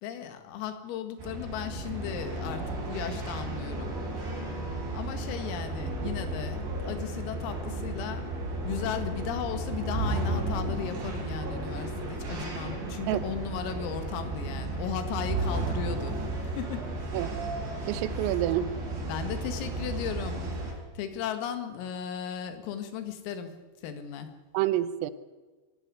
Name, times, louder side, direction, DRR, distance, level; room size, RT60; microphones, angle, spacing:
voice 1, 0.0-4.0 4.3-4.4 4.9-8.3 8.6-16.9 19.1-20.4 21.0-24.3, left 8 dB, 90° left, 9 dB, 4.4 m, -36 dB
sound 1, 1.2-20.7, right 2 dB, 60° right, 7.4 m, -33 dB
voice 2, 17.8-18.7 24.5-25.1, right 13 dB, 85° right, 15 dB, 3.5 m, -28 dB
23.0 x 12.5 x 9.7 m, 1.3 s
omnidirectional pair, 5.9 m